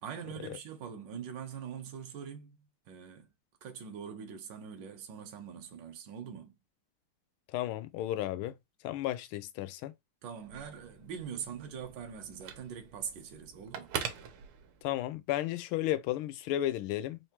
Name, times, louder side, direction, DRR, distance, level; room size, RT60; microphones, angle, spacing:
voice 1, 0.0-3.3 3.6-6.5 10.2-13.9, right 7 dB, 65° right, 1.4 m, -43 dB
voice 2, 7.5-8.5 8.8-9.9 14.8-17.2, left 13 dB, 80° left, 1.4 m, -33 dB
Telephone, 10.3-15.1, right 8 dB, 85° right, 1.7 m, -43 dB
4.5 x 2.9 x 2.9 m
omnidirectional pair, 2.3 m